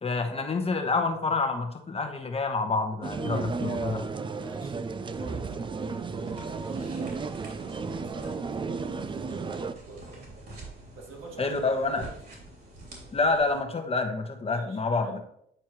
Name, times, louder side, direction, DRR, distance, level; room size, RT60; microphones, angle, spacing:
voice 1, 0.0-4.0 11.4-12.1 13.1-15.2, left 3 dB, 30° left, 5 dB, 1.0 m, -28 dB
sound 1, 3.0-9.7, right 4 dB, 25° right, 0.4 m, -33 dB
voice 2, 4.3-10.3 11.0-12.1 14.5-15.2, right 3 dB, 90° right, -1 dB, 1.7 m, -47 dB
sound 2, 5.1-13.6, right 2 dB, 55° right, 3.0 m, -47 dB
9.1 x 4.5 x 3.1 m, 0.71 s
cardioid pair, 90°, 20 cm